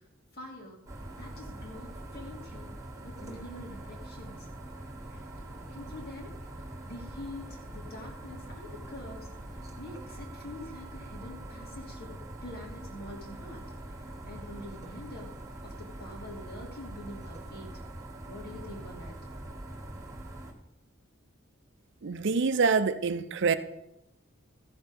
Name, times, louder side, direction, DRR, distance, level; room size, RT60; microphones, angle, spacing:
voice 1, 0.3-0.8 1.2-2.7 3.0-4.5 5.1-6.3 6.8-9.3 9.5-12.1 12.4-15.3 15.6-17.7 18.3-19.4, left 1 dB, 50° left, 2.9 m, -46 dB
sound 1, 0.9-20.5, right 1 dB, 15° right, 1.7 m, -43 dB
voice 2, 22.0-23.6, right 4 dB, 60° right, 0.6 m, -26 dB
14.0 x 6.7 x 5.3 m
head